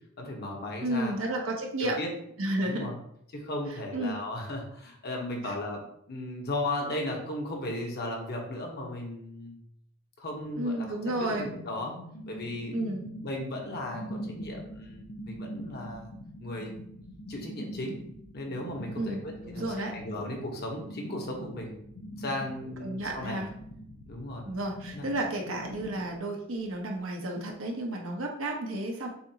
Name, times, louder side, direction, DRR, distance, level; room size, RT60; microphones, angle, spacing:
voice 1, 0.2-1.4 1.8-2.1 2.6-2.9 3.3-9.6 10.2-10.9 11.2-11.9 12.3-12.7 13.2-16.1 16.4-16.7 17.3-17.9 18.3-21.7 22.2-23.4 24.1-24.4 24.9-25.1, left 1 dB, 50° left, 0 dB, 1.0 m, -36 dB
voice 2, 0.8-2.0 2.4-2.9 3.9-4.2 5.4-5.5 10.5-11.5 12.7-13.0 19.0-19.9 22.8-23.5 24.4-29.1, right 1 dB, 80° right, 1 dB, 0.9 m, -32 dB
sound 1, 10.4-26.2, equal, 75° left, 0.8 m, -43 dB
6.7 x 2.5 x 2.8 m, 0.71 s
head